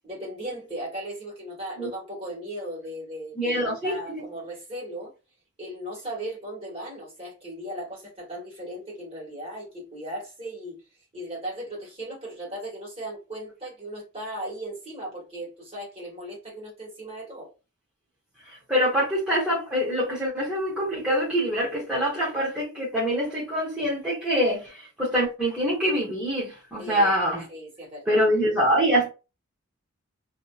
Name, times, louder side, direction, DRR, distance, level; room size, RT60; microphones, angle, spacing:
voice 1, 0.0-5.1 5.6-10.8 11.1-17.5 26.8-27.1 27.5-28.2, right 1 dB, 25° right, 1.5 m, -37 dB
voice 2, 3.4-4.2 18.4-27.4 28.1-29.1, equal, 5° right, 0.8 m, -25 dB
2.7 x 2.5 x 2.3 m
head